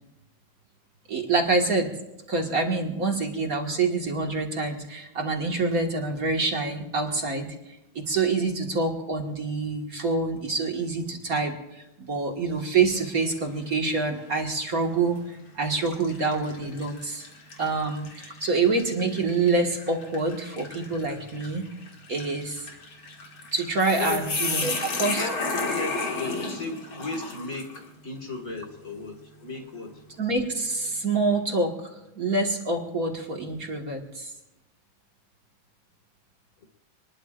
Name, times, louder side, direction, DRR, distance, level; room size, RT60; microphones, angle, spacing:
voice 1, 1.1-1.9 2.3-7.5 8.0-15.2 15.5-17.2 17.6-21.7 22.1-22.7 23.5-24.7 25.0-25.3 30.2-34.3, right 3 dB, 45° right, 1 dB, 2.1 m, -26 dB
sound 1, 12.9-13.4 13.9-14.1 15.0-15.2 15.9-27.9, left 3 dB, 80° left, 3.1 m, -34 dB
voice 2, 24.0-24.3 24.6-30.2 36.6-36.7, left 2 dB, 45° left, 3 dB, 2.3 m, -36 dB
26.0 x 20.5 x 2.5 m, 0.92 s
omnidirectional pair, 2.2 m